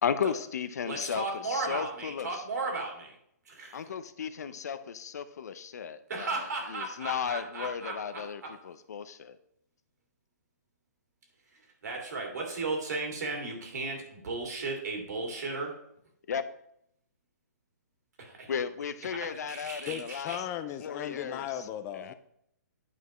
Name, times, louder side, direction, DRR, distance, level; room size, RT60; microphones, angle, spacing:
voice 1, 0.0-2.4 3.7-6.4 6.7-9.4 16.3-16.5 18.5-20.4 20.8-21.5 21.9-22.1, left 7 dB, 65° left, 12 dB, 0.6 m, -35 dB
voice 2, 0.8-3.2 3.5-3.9 6.1-8.6 11.8-15.7 18.2-18.5 19.2-20.4, right 3 dB, 70° right, 1 dB, 2.5 m, -35 dB
voice 3, 19.9-22.1, left 10 dB, 20° left, 11 dB, 0.3 m, -37 dB
9.1 x 5.8 x 3.1 m, 0.74 s
hypercardioid pair, 150°, 9 cm